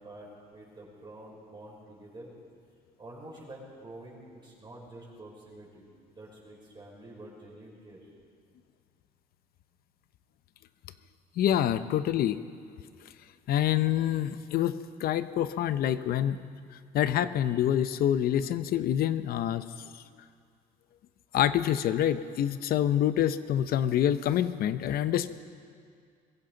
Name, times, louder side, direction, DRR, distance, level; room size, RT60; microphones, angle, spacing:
voice 1, 0.0-2.3 3.0-5.8 6.1-8.1, right 1 dB, 25° right, -5 dB, 5.3 m, -48 dB
voice 2, 11.4-12.4 13.5-16.4 16.9-19.6 21.3-25.3, left 11 dB, 65° left, 13 dB, 0.7 m, -26 dB
22.0 x 15.5 x 3.9 m, 2.2 s
cardioid pair, 110°, 17 cm